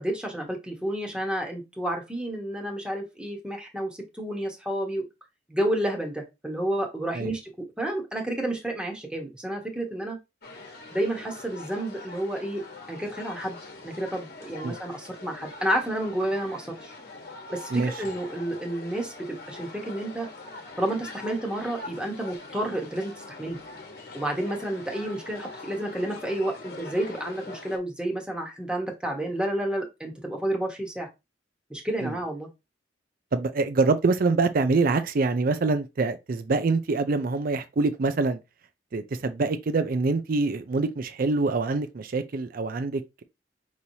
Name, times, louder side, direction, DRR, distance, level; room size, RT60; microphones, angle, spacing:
voice 1, 0.0-5.0 5.5-10.2 10.9-12.6 12.9-13.6 13.8-16.9 17.5-20.3 20.8-23.6 24.1-31.1 31.7-32.5, right 1 dB, 5° right, 1.1 m, -30 dB
sound 1, 10.4-27.8, left 3 dB, 60° left, 1.1 m, -43 dB
voice 2, 33.3-38.4 38.9-43.2, right 3 dB, 55° right, 0.5 m, -25 dB
5.4 x 3.1 x 2.7 m
head